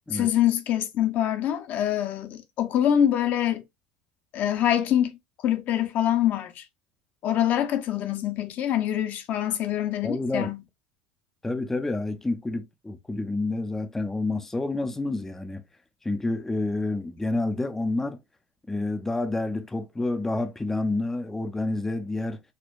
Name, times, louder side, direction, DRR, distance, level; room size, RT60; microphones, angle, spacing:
voice 1, 0.1-3.6 4.3-5.2 5.4-6.7 7.2-10.6, left 11 dB, 55° left, 0.6 m, -25 dB
voice 2, 10.0-10.5 11.4-15.6 16.0-18.2 18.7-22.4, left 2 dB, 10° left, 0.4 m, -29 dB
4.3 x 2.2 x 2.3 m
supercardioid pair, 95°, 4 cm